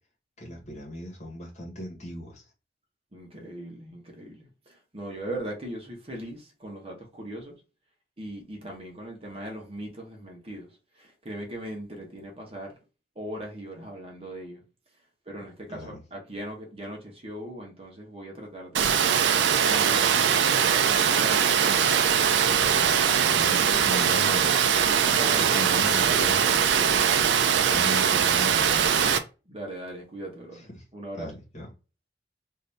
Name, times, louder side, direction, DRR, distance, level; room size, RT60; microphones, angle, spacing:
voice 1, 0.4-2.5 15.7-16.0 22.5-22.9 23.2-24.6 25.2-29.2 30.5-30.8 31.2-31.7, left 1 dB, 40° left, 1.2 m, -38 dB
voice 2, 3.1-7.6 8.2-10.7 11.0-12.7 13.2-14.6 15.3-19.0 19.6-21.9 24.9-25.6 29.5-31.3, right 1 dB, 30° right, 0.9 m, -39 dB
Water, 18.7-29.2, right 7 dB, 85° right, 0.4 m, -22 dB
2.6 x 2.6 x 3.3 m
head